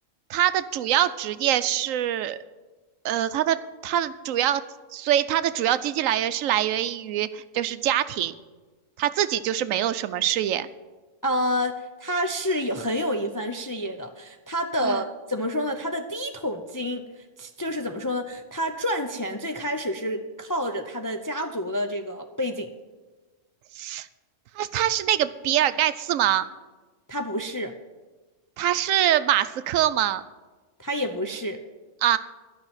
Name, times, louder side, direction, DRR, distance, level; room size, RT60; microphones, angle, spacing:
voice 1, 0.3-2.4 3.0-4.6 4.9-8.3 9.0-10.7 14.8-15.0 23.7-24.1 24.6-26.5 28.6-30.2 32.0-32.2, right 11 dB, 80° right, 14 dB, 1.0 m, -24 dB
voice 2, 11.2-17.1 17.4-22.7 27.1-27.7 30.8-31.6, equal, 30° left, 5 dB, 0.4 m, -28 dB
12.0 x 5.6 x 8.9 m, 1.2 s
omnidirectional pair, 1.4 m